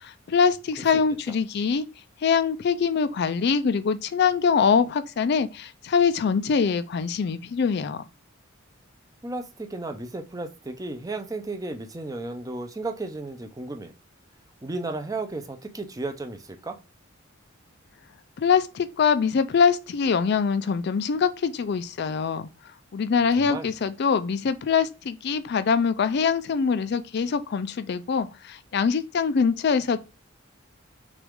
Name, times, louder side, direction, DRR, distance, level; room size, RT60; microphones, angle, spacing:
voice 1, 0.0-1.9 2.2-8.0 18.4-22.5 22.9-30.0, left 6 dB, 55° left, 0.4 m, -23 dB
voice 2, 9.2-13.9 14.6-16.8 23.4-23.7, right 2 dB, 15° right, 0.5 m, -34 dB
6.1 x 2.4 x 3.5 m
head